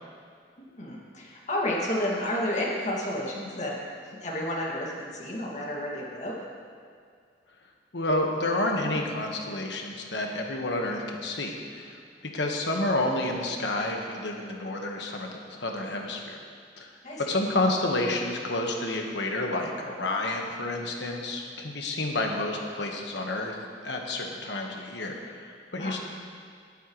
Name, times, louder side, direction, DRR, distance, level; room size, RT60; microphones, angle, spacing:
voice 1, 0.6-3.7 4.1-6.3 17.0-17.4 25.8-25.9, left 1 dB, 45° left, -3 dB, 2.2 m, -31 dB
voice 2, 7.9-12.0 12.3-16.4 16.8-16.9 17.3-23.6 23.8-26.0, left 2 dB, 80° left, 1 dB, 1.5 m, -30 dB
18.5 x 9.1 x 3.2 m, 2.2 s
head